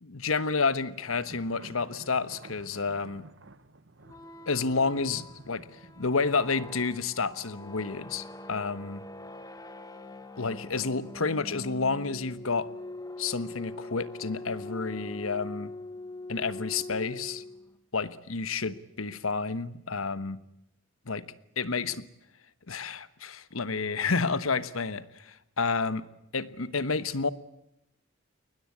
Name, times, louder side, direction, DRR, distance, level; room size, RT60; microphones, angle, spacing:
voice 1, 0.0-3.2 4.5-5.7 6.0-9.0 10.4-12.7 13.2-15.7 16.3-17.4 17.9-20.4 21.1-21.2 21.6-22.0 22.7-26.1 26.3-27.3, left 4 dB, 85° left, 1.3 m, -30 dB
sound 1, 1.1-6.8, right 2 dB, 60° right, 1.3 m, -52 dB
sound 2, 4.0-17.8, left 2 dB, 20° left, 1.6 m, -43 dB
21.0 x 20.0 x 9.7 m
head